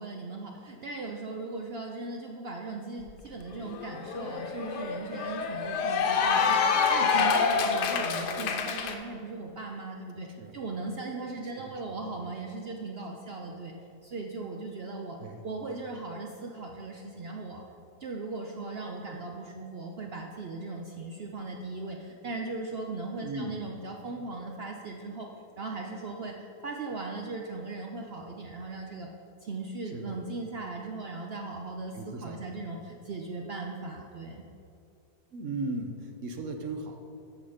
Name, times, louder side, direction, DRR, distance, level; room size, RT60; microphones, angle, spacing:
voice 1, 0.0-13.7 14.0-15.2 15.4-17.6 18.0-25.3 25.6-29.1 29.4-34.4, right 3 dB, 80° right, 1 dB, 0.5 m, -38 dB
Cheering / Applause, 3.1-3.2 3.5-8.9, left 5 dB, 75° left, 1.3 m, -27 dB
voice 2, 23.2-23.6 29.9-30.2 31.9-32.5 35.3-37.0, right 2 dB, 60° right, 5 dB, 1.0 m, -37 dB
9.4 x 6.3 x 5.0 m, 2.6 s
omnidirectional pair, 1.8 m